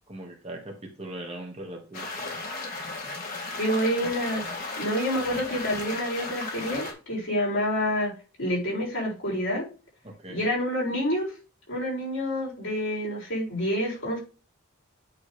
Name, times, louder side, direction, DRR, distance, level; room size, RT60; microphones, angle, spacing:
voice 1, 0.1-2.4 10.0-10.5, right 1 dB, 30° right, 2 dB, 1.1 m, -40 dB
sound 1, 1.9-6.9, left 3 dB, 45° left, 1.9 m, -35 dB
voice 2, 3.5-8.1 8.4-9.7 10.3-11.3 11.7-14.2, equal, 65° left, -3 dB, 4.1 m, -28 dB
8.7 x 3.1 x 4.9 m, 0.34 s
head